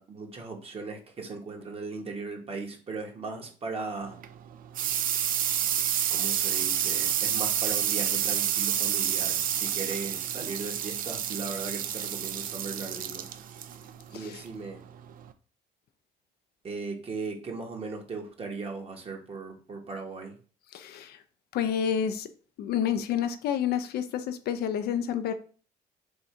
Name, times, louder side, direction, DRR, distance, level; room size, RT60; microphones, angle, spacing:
voice 1, 0.0-4.2 6.1-13.3 14.1-14.8 16.6-20.4, right 4 dB, 35° right, 1.1 m, -38 dB
sound 1, 4.0-15.3, right 10 dB, 55° right, 0.5 m, -29 dB
voice 2, 20.7-21.2 21.5-22.3 22.6-25.4, left 8 dB, 70° left, 0.5 m, -29 dB
3.5 x 2.7 x 4.4 m
cardioid pair, 110°, 17 cm